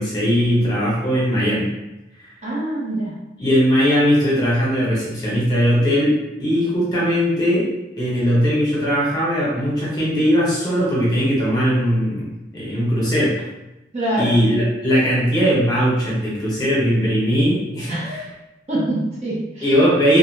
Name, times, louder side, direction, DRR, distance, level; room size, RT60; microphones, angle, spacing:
voice 1, 0.0-1.7 2.2-2.3 3.4-6.1 6.4-7.7 8.0-13.3 14.2-18.2 19.6-20.2, equal, 20° left, -7 dB, 0.9 m, -19 dB
voice 2, 2.4-3.1 13.9-14.4 17.9-18.3 18.7-19.7, right 1 dB, 40° right, -6 dB, 0.6 m, -24 dB
2.5 x 2.5 x 2.8 m, 0.96 s
head